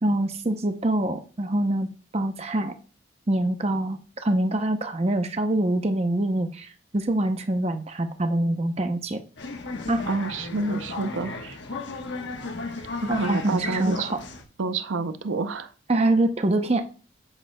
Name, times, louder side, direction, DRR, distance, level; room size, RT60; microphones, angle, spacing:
voice 1, 0.0-2.7 3.3-9.2 9.9-10.1 13.1-14.2 15.9-16.9, right 1 dB, 30° right, 7 dB, 0.7 m, -25 dB
sound 1, 9.4-14.4, left 3 dB, 65° left, 1.2 m, -35 dB
voice 2, 10.1-11.6 13.0-14.1 14.6-15.7, right 3 dB, 80° right, 11 dB, 0.5 m, -28 dB
8.9 x 8.8 x 2.2 m, 0.38 s
head